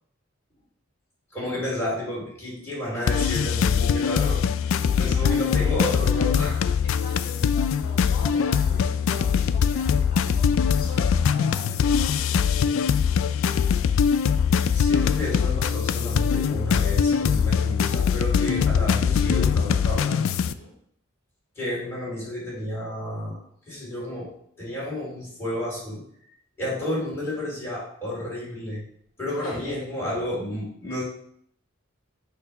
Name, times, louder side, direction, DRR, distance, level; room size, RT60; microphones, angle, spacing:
voice 1, 1.3-4.4 4.9-6.7 14.7-20.2 21.6-23.4 23.7-26.0 26.6-28.8 29.2-31.0, left 1 dB, 10° left, -7 dB, 2.8 m, -31 dB
sound 1, 3.1-20.5, left 7 dB, 70° left, 0.3 m, -22 dB
voice 2, 5.0-5.7 6.8-10.5 10.8-12.1 20.5-20.7 29.3-29.9, left 1 dB, 40° left, -3 dB, 2.5 m, -41 dB
6.6 x 2.8 x 5.5 m, 0.65 s
head